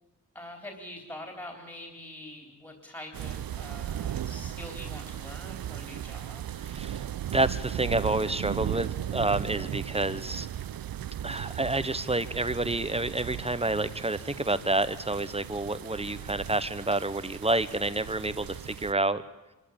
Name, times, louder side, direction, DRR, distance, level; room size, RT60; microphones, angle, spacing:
voice 1, 0.3-6.4, left 1 dB, 10° left, 2 dB, 3.5 m, -44 dB
sound 1, 3.1-18.9, right 10 dB, 85° right, 0.7 m, -37 dB
voice 2, 6.7-7.0 7.3-10.5 11.2-19.2, right 2 dB, 15° right, 13 dB, 1.0 m, -29 dB
25.0 x 14.0 x 8.7 m, 1.1 s
wide cardioid pair, 80°, 34 cm